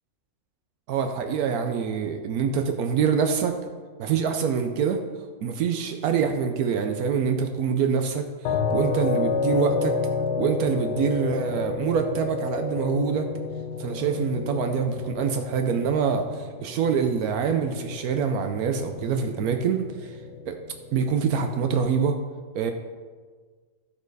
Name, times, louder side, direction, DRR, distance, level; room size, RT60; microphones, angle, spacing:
voice 1, 0.9-3.6 4.0-5.0 5.4-9.9 10.4-13.3 13.8-20.2 20.5-20.6 20.9-22.2 22.5-22.7, right 6 dB, 80° right, 6 dB, 1.1 m, -25 dB
sound 1, 8.4-21.4, left 5 dB, 85° left, 1.3 m, -31 dB
13.5 x 4.6 x 4.7 m, 1.5 s
omnidirectional pair, 1.6 m